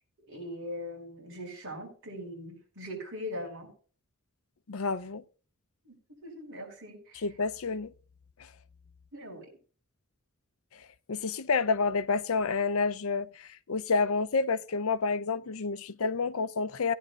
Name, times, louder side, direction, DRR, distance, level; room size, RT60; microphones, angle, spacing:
voice 1, 0.3-3.7 5.8-6.0 6.2-7.3 9.1-9.5, left 1 dB, 60° right, 5.3 m, -41 dB
voice 2, 4.7-5.2 7.2-7.9 11.1-16.9, left 4 dB, 70° left, 0.6 m, -29 dB
18.0 x 10.0 x 2.4 m
head